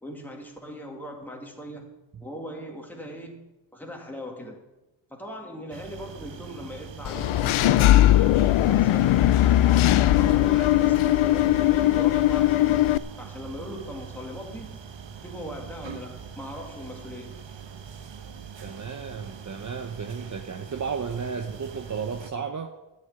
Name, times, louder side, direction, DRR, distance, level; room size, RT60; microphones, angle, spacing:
voice 1, 0.0-1.9 2.2-3.4 3.7-4.6 5.1-9.2 10.2-12.9 13.2-14.8 15.2-17.4, equal, 5° left, 0 dB, 2.2 m, -39 dB
sound 1, 5.7-22.3, right 7 dB, 65° right, 1.2 m, -42 dB
Engine / Mechanisms, 7.0-13.0, left 14 dB, 85° left, 0.6 m, -19 dB
voice 2, 18.5-22.7, right 6 dB, 40° right, 5 dB, 0.9 m, -33 dB
13.0 x 6.6 x 9.0 m, 1.0 s
wide cardioid pair, 110°, 48 cm